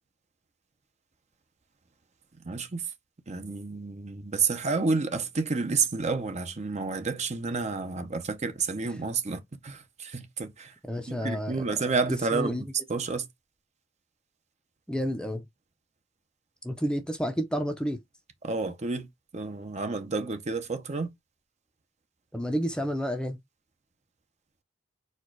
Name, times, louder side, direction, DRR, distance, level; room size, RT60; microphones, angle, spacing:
voice 1, 2.4-2.9 3.3-10.7 11.1-13.3 18.4-19.1 19.3-21.1, right 4 dB, 35° right, 0.7 m, -30 dB
voice 2, 10.8-11.8 12.1-12.6 14.9-15.5 16.6-18.0 22.3-23.4, equal, 5° left, 0.6 m, -30 dB
4.4 x 2.3 x 4.5 m
head